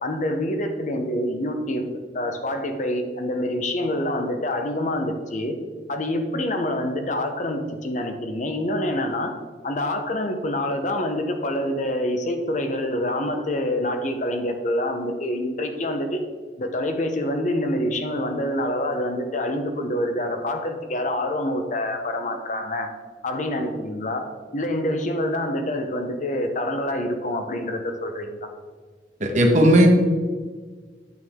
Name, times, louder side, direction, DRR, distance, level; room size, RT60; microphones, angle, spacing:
voice 1, 0.0-5.6 5.9-9.3 9.6-16.2 16.6-22.9 23.2-28.4, left 1 dB, 45° left, 5 dB, 0.9 m, -26 dB
voice 2, 29.2-29.9, right 1 dB, 45° right, 2 dB, 1.3 m, -15 dB
9.4 x 7.4 x 3.7 m, 1.5 s
head